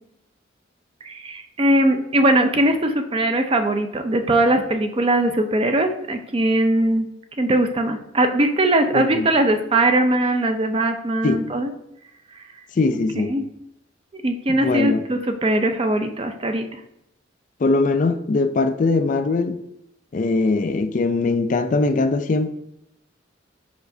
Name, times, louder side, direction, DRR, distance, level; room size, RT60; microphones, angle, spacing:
voice 1, 1.0-7.1 7.4-11.7 12.3-12.4 13.2-13.5 14.1-16.8, right 1 dB, 30° right, 0.5 m, -20 dB
voice 2, 8.9-9.3 11.2-11.4 12.8-13.3 14.5-15.0 17.6-19.6 20.1-22.5, left 3 dB, 40° left, 0.3 m, -21 dB
6.8 x 5.3 x 2.6 m
head